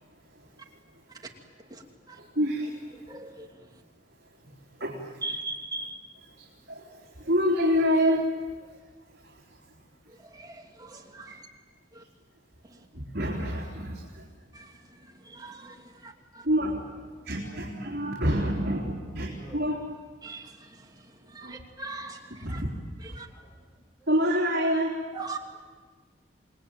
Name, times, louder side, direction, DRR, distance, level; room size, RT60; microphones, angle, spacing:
voice 1, 0.3-0.6 2.1-3.1 4.4-5.2 6.4-8.3 8.6-8.8 9.1-9.6 11.3-11.4 12.9-14.2 16.4-16.8 17.2-19.9 21.4-21.5 22.4-22.7 24.1-25.0, equal, 60° right, -4 dB, 3.9 m, -28 dB
voice 2, 3.1-3.5 5.2-6.0 10.3-11.3 11.9-12.0 14.5-14.7 15.2-15.8 16.0-16.4 20.2-20.8 21.3-22.6 23.1-23.3 25.1-25.4, right 3 dB, 20° right, 1 dB, 2.9 m, -39 dB
voice 3, 17.1-17.9 19.2-19.7 23.3-24.1 25.2-25.6, equal, 15° left, -3 dB, 5.4 m, -54 dB
28.0 x 21.0 x 9.2 m, 1.4 s
head